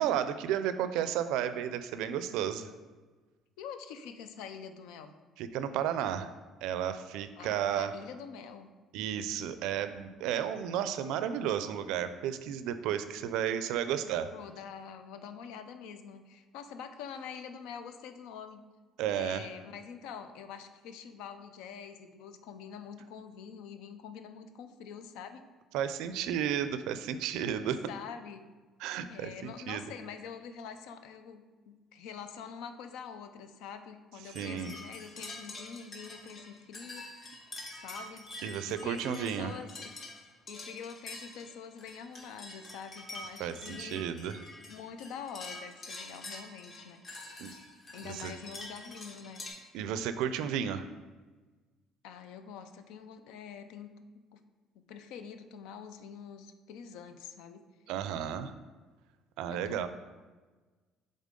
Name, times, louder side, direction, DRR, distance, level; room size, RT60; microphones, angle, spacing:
voice 1, 0.0-2.7 5.4-6.3 6.6-7.9 8.9-14.3 19.0-19.5 25.7-27.8 28.8-29.9 34.3-34.7 38.4-39.5 43.4-44.4 47.4-47.5 48.0-48.3 49.7-50.9 57.9-58.5 59.4-59.9, right 9 dB, 85° right, 11 dB, 0.4 m, -33 dB
voice 2, 3.6-5.2 7.4-8.7 14.0-18.6 19.1-25.5 27.9-28.5 29.1-37.4 37.7-38.2 38.7-40.0 40.5-44.1 44.7-47.0 47.3-47.4 47.9-49.5 52.0-54.4 54.7-57.7 59.5-59.9, left 7 dB, 85° left, 9 dB, 0.5 m, -45 dB
sound 1, 34.2-49.5, left 2 dB, 35° left, 1.0 m, -46 dB
7.3 x 3.8 x 3.7 m, 1.3 s
cardioid pair, 145°, 0 cm